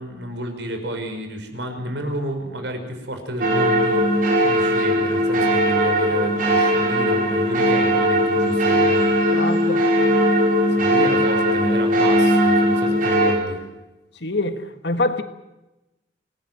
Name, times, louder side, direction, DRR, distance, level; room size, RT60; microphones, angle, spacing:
voice 1, 0.0-9.0 10.7-13.6, equal, 75° right, 5.6 m, -31 dB
sound 1, 3.4-13.3, equal, 50° right, 5.5 m, -19 dB
voice 2, 9.3-9.9 14.2-15.2, left 2 dB, 65° left, 1.8 m, -24 dB
27.0 x 19.0 x 7.7 m
head